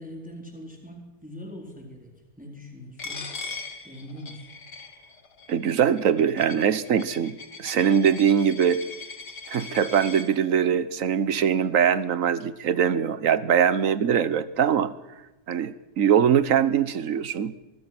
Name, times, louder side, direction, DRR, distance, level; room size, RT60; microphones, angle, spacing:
voice 1, 0.0-2.1 2.4-3.3 3.8-4.5, equal, 5° right, 1 dB, 4.0 m, -41 dB
Coin (dropping), 3.0-10.3, left 4 dB, 80° left, 2.8 m, -40 dB
voice 2, 5.5-8.8 9.5-14.9 15.5-17.5, right 8 dB, 55° right, 15 dB, 1.3 m, -22 dB
23.5 x 23.0 x 6.1 m, 0.99 s
omnidirectional pair, 1.8 m